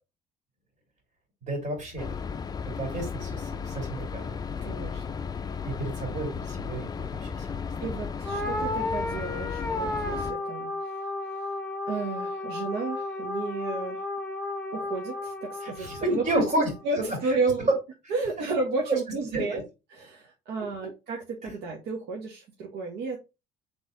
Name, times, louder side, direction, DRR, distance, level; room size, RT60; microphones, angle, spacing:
voice 1, 1.4-2.1 2.8-4.4 5.4-7.6 15.6-16.7 16.9-17.4 19.3-19.6 20.6-20.7, right 1 dB, 45° right, 2 dB, 2.9 m, -31 dB
sound 1, 2.0-10.3, left 6 dB, 25° left, 0.4 m, -35 dB
voice 2, 4.6-5.0 7.8-10.7 11.9-14.0 14.7-16.4 16.8-17.7 18.1-19.6 19.9-23.2, right 3 dB, 75° right, 0 dB, 1.1 m, -32 dB
sound 2, 8.2-16.8, left 2 dB, 5° left, 1.1 m, -33 dB
4.1 x 3.3 x 3.9 m, 0.27 s
cardioid pair, 110°, 17 cm